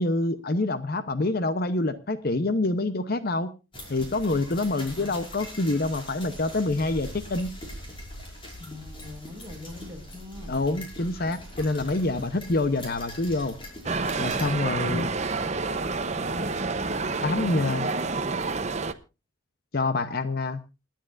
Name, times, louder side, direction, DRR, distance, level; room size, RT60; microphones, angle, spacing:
voice 1, 0.0-3.5 3.9-7.5 10.5-13.6 14.2-15.1 17.2-17.9 19.7-20.6, left 2 dB, 50° left, 12 dB, 0.8 m, -26 dB
sound 1, 3.7-14.5, equal, 25° left, 5.6 m, -42 dB
voice 2, 4.7-5.3 8.6-10.5 11.6-12.5 14.5-15.1 16.0-16.6 16.9-18.6, left 2 dB, 20° right, 0 dB, 5.1 m, -42 dB
sound 2, 13.8-18.9, right 3 dB, 35° right, 0.8 m, -28 dB
28.0 x 10.0 x 2.5 m, 0.29 s
head